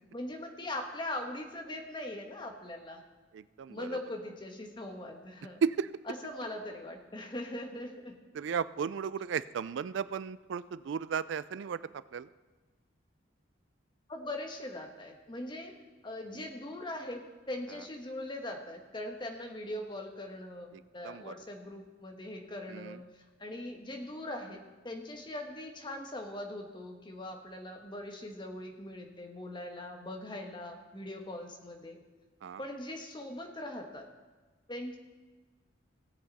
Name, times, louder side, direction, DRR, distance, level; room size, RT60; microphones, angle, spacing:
voice 1, 0.1-3.0 3.7-5.6 6.1-8.2 14.1-15.7 16.0-23.0 23.4-24.6 24.8-32.0 32.6-34.1 34.7-35.0, left 1 dB, 25° left, 3 dB, 1.2 m, -41 dB
voice 2, 3.3-3.9 5.6-5.9 8.3-11.8 12.1-12.3 21.0-21.3 22.7-23.0 32.4-32.6, right 6 dB, 80° right, 17 dB, 0.3 m, -34 dB
16.5 x 8.0 x 4.1 m, 1.3 s
head